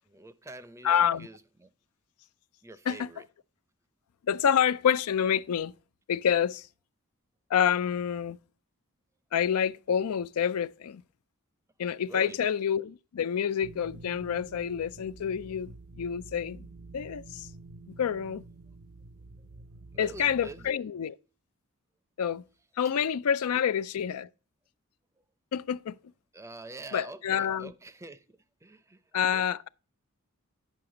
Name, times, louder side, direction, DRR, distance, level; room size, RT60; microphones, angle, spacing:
voice 1, 0.1-1.7 2.6-3.3 12.1-12.4 19.9-20.7 26.3-29.0 29.3-29.4, right 2 dB, 15° right, 0.5 m, -46 dB
voice 2, 0.8-1.3 2.9-3.1 4.3-5.7 6.1-6.7 7.5-8.4 9.3-11.0 11.8-16.7 16.9-17.5 18.0-18.4 20.0-21.2 22.2-22.4 22.8-24.3 25.5-26.0 26.9-27.7 29.1-29.7, left 8 dB, 80° left, 0.4 m, -28 dB
sound 1, 13.6-20.7, right 3 dB, 70° right, 0.7 m, -49 dB
9.4 x 5.7 x 3.8 m
head